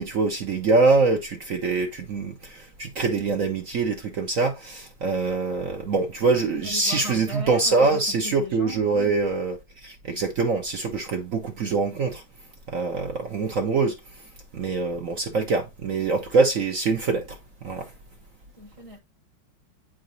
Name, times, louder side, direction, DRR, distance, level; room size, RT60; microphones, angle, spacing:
voice 1, 0.0-12.2 12.7-14.3 14.5-17.9, right 3 dB, 55° right, 0.9 m, -24 dB
voice 2, 6.5-9.1 18.6-19.0, equal, 40° left, 0.4 m, -38 dB
9.2 x 4.0 x 2.6 m
omnidirectional pair, 2.3 m